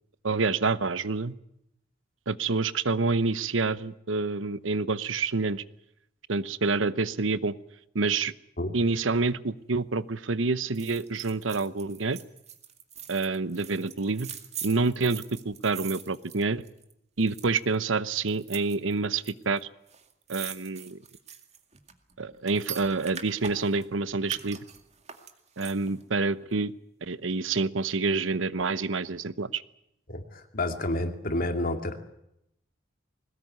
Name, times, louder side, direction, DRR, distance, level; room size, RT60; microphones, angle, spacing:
voice 1, 0.2-1.3 2.3-5.6 6.3-7.5 7.9-8.3 8.7-12.2 13.1-14.3 14.6-16.6 17.2-19.7 20.3-21.0 22.2-24.6 25.6-26.7 27.0-29.6, right 3 dB, 85° right, 16 dB, 0.9 m, -27 dB
sound 1, 10.7-16.9 17.2-17.7 18.3-19.3 19.6-19.7 19.9-23.9 24.2-26.0 26.4-26.5, right 8 dB, 35° right, 2.2 m, -42 dB
voice 2, 30.1-32.0, left 1 dB, 50° left, 6 dB, 2.5 m, -30 dB
21.5 x 19.0 x 9.5 m, 0.80 s
head